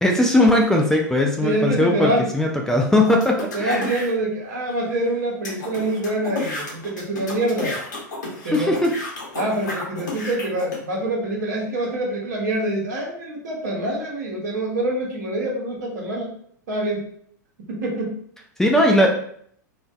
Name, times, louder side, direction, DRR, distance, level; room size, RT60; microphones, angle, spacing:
voice 1, 0.0-3.8 8.5-8.9 18.6-19.1, left 1 dB, 5° left, 0 dB, 0.3 m, -18 dB
voice 2, 1.4-2.3 3.5-7.8 8.4-8.8 9.3-16.3 16.7-17.1 17.7-18.2, right 1 dB, 65° right, -1 dB, 0.8 m, -25 dB
sound 1, 3.0-4.1 4.7-4.8 5.0-5.1 5.4-10.8, left 2 dB, 70° left, 0.8 m, -32 dB
2.4 x 2.2 x 2.3 m, 0.64 s
figure-of-eight pair, 95°, 10 cm